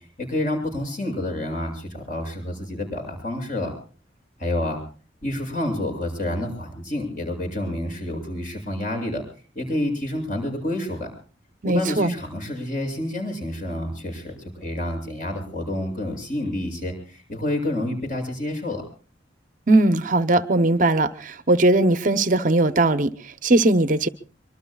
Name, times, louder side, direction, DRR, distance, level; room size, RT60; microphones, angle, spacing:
voice 1, 0.2-3.7 4.4-4.8 5.2-9.2 9.6-11.1 11.6-18.8, left 1 dB, 45° left, 3 dB, 7.3 m, -28 dB
voice 2, 11.6-12.1 19.7-24.1, right 2 dB, 45° right, 11 dB, 0.8 m, -19 dB
25.5 x 24.5 x 2.3 m, 0.39 s
head